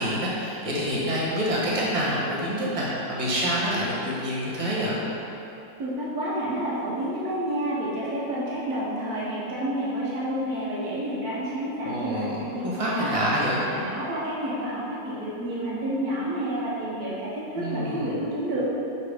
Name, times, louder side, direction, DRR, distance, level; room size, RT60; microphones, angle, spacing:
voice 1, 0.0-5.0 11.8-13.6 17.6-18.1, equal, 20° right, -6 dB, 1.1 m, -27 dB
voice 2, 5.8-12.6 13.0-13.1 13.6-18.6, right 1 dB, 55° right, -7 dB, 1.8 m, -29 dB
6.5 x 4.3 x 5.0 m, 3.0 s
omnidirectional pair, 2.0 m